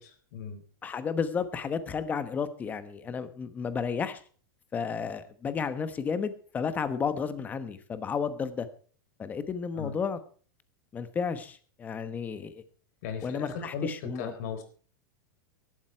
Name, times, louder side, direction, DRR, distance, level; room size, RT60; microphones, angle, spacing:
voice 1, 0.0-0.6 9.8-10.0 13.0-14.6, left 6 dB, 50° left, 8 dB, 3.9 m, -37 dB
voice 2, 0.8-4.2 4.7-8.7 9.2-10.2 10.9-12.6 13.2-14.3, left 6 dB, 15° left, 12 dB, 1.2 m, -32 dB
16.5 x 12.5 x 4.6 m, 0.42 s
supercardioid pair, 160°, 11 cm